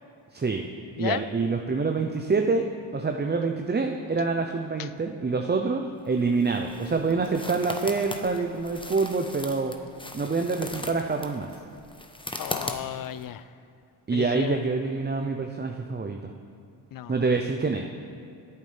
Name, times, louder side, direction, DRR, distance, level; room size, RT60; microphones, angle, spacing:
voice 1, 0.3-0.7 1.0-2.6 2.9-9.7 10.1-11.5 14.1-16.3 17.1-17.9, right 4 dB, 20° right, 4 dB, 0.6 m, -26 dB
sound 1, 6.1-13.2, left 1 dB, 10° left, 1.0 m, -39 dB
voice 2, 12.4-13.4 14.1-14.6 16.9-17.2, left 12 dB, 45° left, 16 dB, 0.5 m, -33 dB
14.0 x 8.2 x 3.4 m, 2.6 s
supercardioid pair, 50°, 49 cm